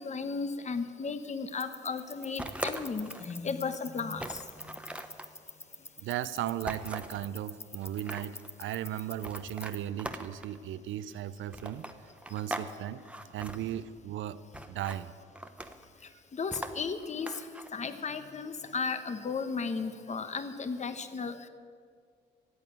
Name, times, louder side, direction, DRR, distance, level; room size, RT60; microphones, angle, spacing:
voice 1, 0.0-4.8 16.3-17.3 17.7-21.4, left 5 dB, 35° left, 10 dB, 1.1 m, -35 dB
Automatic Wrist Watch Ticking, 1.5-9.9, left 2 dB, 15° left, 0.5 m, -48 dB
sound 1, 2.4-3.3 3.7-3.8 4.2-5.3 6.7-7.2 7.8-8.5 9.2-10.6 11.5-12.7 13.0-13.6 14.5-15.0 15.4-15.9 16.5-17.7, right 1 dB, 5° right, 0.9 m, -40 dB
voice 2, 6.0-13.1 13.3-15.1, right 12 dB, 75° right, 15 dB, 0.6 m, -36 dB
14.0 x 8.4 x 8.8 m, 2.1 s
cardioid pair, 90°, 20 cm